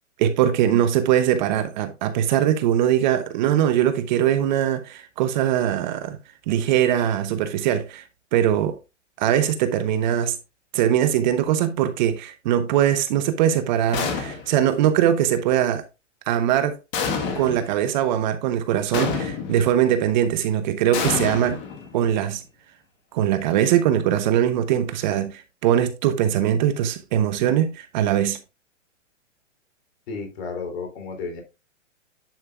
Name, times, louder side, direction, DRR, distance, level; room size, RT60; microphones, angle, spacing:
voice 1, 0.2-6.2 6.5-8.0 8.3-8.8 9.2-10.3 10.7-15.8 16.3-16.8 17.3-21.6 21.9-22.4 23.1-28.4, right 10 dB, 40° right, 0.9 m, -21 dB
sound 1, 13.9-14.7 16.9-17.7 18.9-19.7 20.9-22.2, left 5 dB, 30° left, 1.6 m, -28 dB
voice 2, 30.1-31.4, left 4 dB, 60° left, 3.2 m, -32 dB
10.0 x 5.4 x 2.4 m
hypercardioid pair, 135°, 37 cm